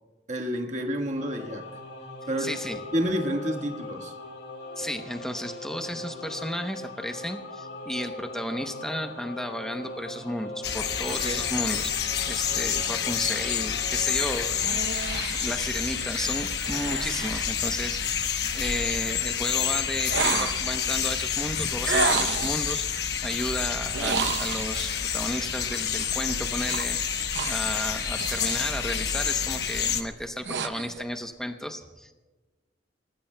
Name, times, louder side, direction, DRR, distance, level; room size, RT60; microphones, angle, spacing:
voice 1, 0.3-1.7 2.3-2.6 2.9-4.1 11.1-11.4, equal, 40° right, 2 dB, 1.4 m, -29 dB
Singing / Musical instrument, 1.1-14.5, left 2 dB, 90° left, 3.4 m, -40 dB
voice 2, 2.4-2.8 4.8-11.9 12.3-14.6 15.4-18.3 18.5-22.8 23.2-27.0 27.5-32.1, equal, 5° left, 5 dB, 0.7 m, -33 dB
sound 1, 10.6-30.0, left 8 dB, 60° left, 1.1 m, -28 dB
sound 2, 14.1-18.3 20.1-20.8 21.8-22.7 23.9-24.9 26.6-28.7 29.1-29.4 30.0-31.0, right 5 dB, 65° right, 0.7 m, -32 dB
27.5 x 19.0 x 2.2 m, 1.2 s
head